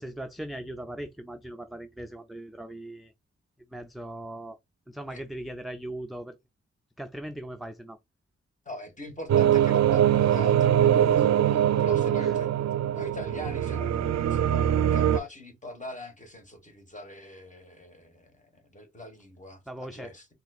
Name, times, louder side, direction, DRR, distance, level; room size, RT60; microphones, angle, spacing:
voice 1, 0.0-3.1 3.7-4.6 4.9-6.3 7.0-8.0 12.2-12.3 19.7-20.1, right 1 dB, ahead, 0.3 m, -39 dB
voice 2, 8.6-13.9 14.3-20.3, left 1 dB, 25° left, 1.3 m, -42 dB
sound 1, 9.3-15.2, right 10 dB, 65° right, 0.4 m, -22 dB
4.0 x 2.5 x 2.3 m
cardioid pair, 75°, 29 cm